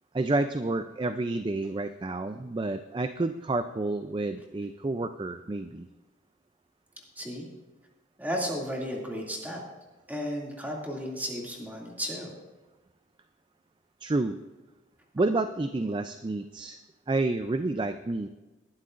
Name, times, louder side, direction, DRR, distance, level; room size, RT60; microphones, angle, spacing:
voice 1, 0.1-5.9 14.0-14.4 15.1-16.8 17.1-18.3, right 2 dB, 25° right, 9 dB, 0.4 m, -29 dB
voice 2, 8.2-9.6 10.1-12.3, equal, 10° right, -2 dB, 2.4 m, -34 dB
19.5 x 11.5 x 2.5 m, 1.1 s
head